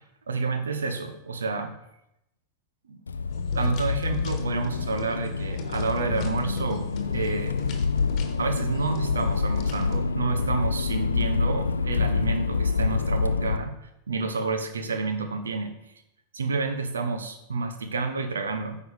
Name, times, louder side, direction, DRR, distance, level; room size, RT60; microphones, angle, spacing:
voice 1, 0.3-1.7 2.9-3.0 3.5-6.8 7.1-7.6 8.4-13.7 14.1-15.7 16.3-18.8, right 4 dB, 70° right, 7 dB, 1.0 m, -29 dB
Accelerating revving vroom, 3.1-13.6, left 4 dB, 75° left, 0.4 m, -27 dB
sound 1, 3.3-10.0, left 6 dB, 35° left, 1.4 m, -41 dB
9.4 x 4.8 x 5.1 m, 0.84 s
figure-of-eight pair, 90°, 0 cm